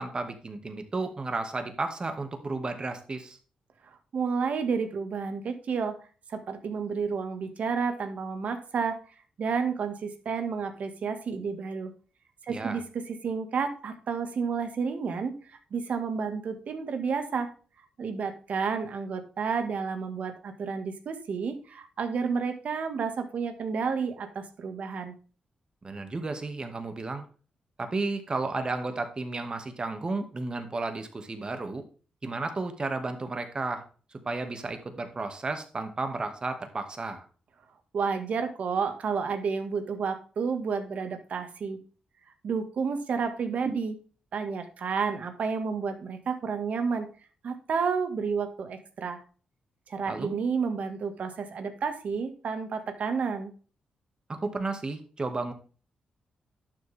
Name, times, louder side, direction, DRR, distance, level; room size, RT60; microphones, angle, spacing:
voice 1, 0.0-3.4 12.5-12.8 25.8-27.3 27.8-31.8 32.2-33.8 34.1-37.2 50.1-50.3 54.3-55.5, right 3 dB, 35° right, 7 dB, 2.1 m, -33 dB
voice 2, 4.1-6.0 6.3-9.0 9.4-11.9 12.4-17.5 18.0-25.1 37.9-41.8 42.4-44.0 44.3-47.1 47.4-49.2 49.9-53.5, right 5 dB, 65° right, 8 dB, 2.0 m, -31 dB
11.5 x 7.3 x 3.6 m, 0.38 s
cardioid pair, 80°, 3 cm